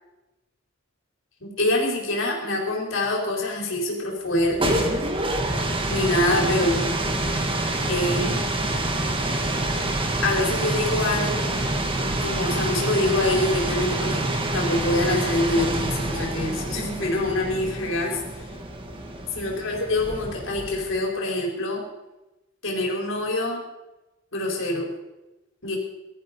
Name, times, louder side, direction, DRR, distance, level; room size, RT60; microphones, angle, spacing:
voice 1, 1.4-4.8 5.9-6.8 7.9-8.4 10.2-11.5 12.2-14.2 14.5-18.4 19.3-21.8 22.6-23.6 24.3-24.9 25.6-25.8, left 1 dB, 70° left, -1 dB, 5.0 m, -25 dB
sound 1, 4.3-21.0, right 1 dB, 25° right, 1.9 m, -27 dB
19.0 x 13.5 x 5.4 m, 1.0 s
head